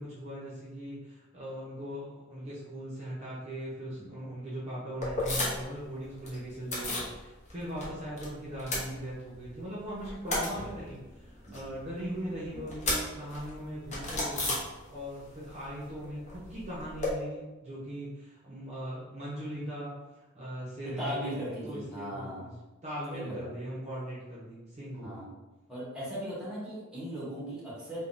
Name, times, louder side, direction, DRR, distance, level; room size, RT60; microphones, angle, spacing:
voice 1, 0.0-14.5 14.9-19.9 20.3-22.5 22.8-25.2, equal, 30° right, -7 dB, 0.7 m, -39 dB
sound 1, 5.0-5.8 6.0-7.1 7.5-8.3 8.5-9.5 9.9-15.2 15.5-17.1, left 2 dB, 35° left, 0.7 m, -34 dB
voice 2, 20.8-22.5 23.1-23.5 25.0-25.3 25.7-28.0, equal, 5° right, -7 dB, 0.9 m, -38 dB
3.4 x 2.2 x 2.5 m, 1.1 s
head